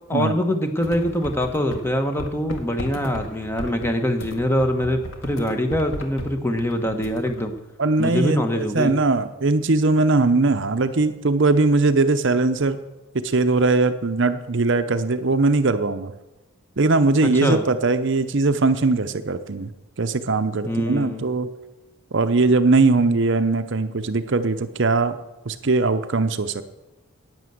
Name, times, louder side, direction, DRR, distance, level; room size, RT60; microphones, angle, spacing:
voice 1, 0.1-7.5 8.0-8.9 17.2-17.6 20.6-21.3, equal, 10° left, 6 dB, 1.0 m, -24 dB
sound 1, 0.8-1.9 2.2-7.5, equal, 60° left, 1.8 m, -35 dB
voice 2, 7.8-12.8 13.2-16.1 16.8-19.7 20.0-21.5 22.1-25.2 25.5-26.6, right 3 dB, 55° right, 10 dB, 0.7 m, -20 dB
11.0 x 9.4 x 7.9 m, 1.0 s
head